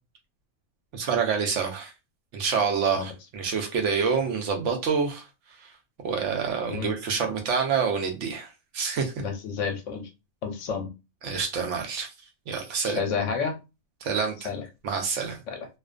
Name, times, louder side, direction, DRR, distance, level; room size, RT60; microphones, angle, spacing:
voice 1, 0.9-1.9 2.3-5.2 5.6-5.7 6.0-9.1 11.2-12.1 12.5-13.0 14.0-14.4 14.8-15.4, right 6 dB, 70° right, 0.9 m, -27 dB
voice 2, 9.2-10.1 10.4-10.9 12.8-13.5 14.4-14.6 15.5-15.7, left 6 dB, 70° left, 0.8 m, -30 dB
2.4 x 2.2 x 2.3 m
omnidirectional pair, 1.4 m